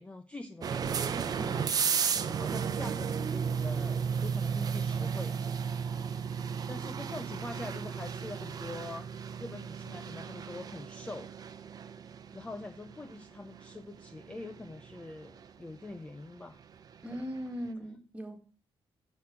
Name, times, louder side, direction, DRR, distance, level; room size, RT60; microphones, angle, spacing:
voice 1, 0.0-1.7 2.1-5.4 6.7-9.1 9.4-11.3 12.3-16.6 17.1-17.2, left 2 dB, 10° left, 0.7 m, -44 dB
sound 1, 0.6-17.4, right 6 dB, 40° right, 0.9 m, -34 dB
voice 2, 17.0-18.4, equal, 10° right, 2.1 m, -39 dB
10.0 x 6.8 x 8.6 m
wide cardioid pair, 180°, 10 cm